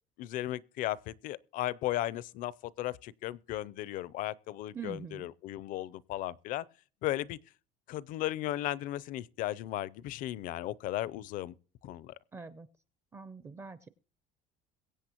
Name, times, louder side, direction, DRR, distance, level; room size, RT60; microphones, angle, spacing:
voice 1, 0.2-6.6 7.0-7.4 7.9-11.5 11.8-12.1, left 15 dB, 50° left, 0.5 m, -36 dB
voice 2, 4.7-5.3 12.3-12.7 13.1-13.9, right 5 dB, 15° right, 0.4 m, -44 dB
22.5 x 8.4 x 2.9 m
cardioid pair, 170°, 18 cm